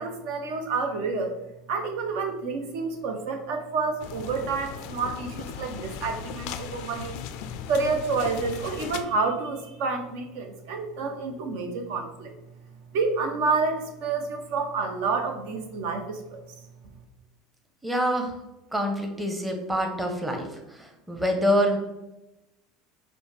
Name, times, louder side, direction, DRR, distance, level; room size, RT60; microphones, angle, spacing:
voice 1, 0.0-1.3 1.7-7.1 7.7-12.3 12.9-16.4, right 4 dB, 65° right, 5 dB, 0.6 m, -29 dB
sound 1, 4.0-9.0, left 8 dB, 60° left, 0.3 m, -37 dB
voice 2, 17.8-18.4 18.7-21.8, equal, 10° right, 3 dB, 0.8 m, -26 dB
5.2 x 2.2 x 3.3 m, 0.95 s
hypercardioid pair, 75°, 0 cm